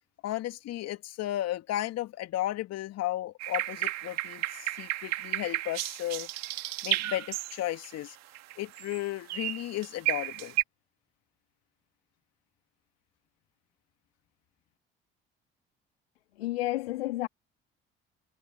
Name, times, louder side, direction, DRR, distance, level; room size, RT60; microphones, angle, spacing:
voice 1, 0.2-6.3 6.8-8.2 8.6-10.6, left 14 dB, 60° left, 2.2 m, -34 dB
sound 1, 3.4-7.9 8.3-9.0 9.3-10.6, right 17 dB, 60° right, 2.1 m, -33 dB
voice 2, 16.4-17.3, left 17 dB, 80° left, 2.0 m, -31 dB
figure-of-eight pair, 50°, 29 cm